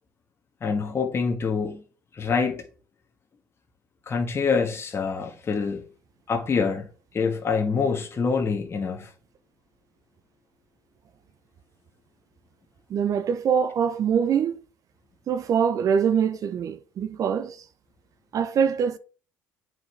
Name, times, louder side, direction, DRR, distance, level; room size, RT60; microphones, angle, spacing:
voice 1, 0.6-1.8 2.1-2.6 4.1-5.8 6.3-6.9 7.1-9.1, left 5 dB, 35° left, 1.3 m, -25 dB
voice 2, 12.9-14.5 15.3-17.6 18.3-19.0, right 7 dB, 50° right, 0.6 m, -24 dB
7.9 x 4.7 x 3.3 m
supercardioid pair, 70°, 7 cm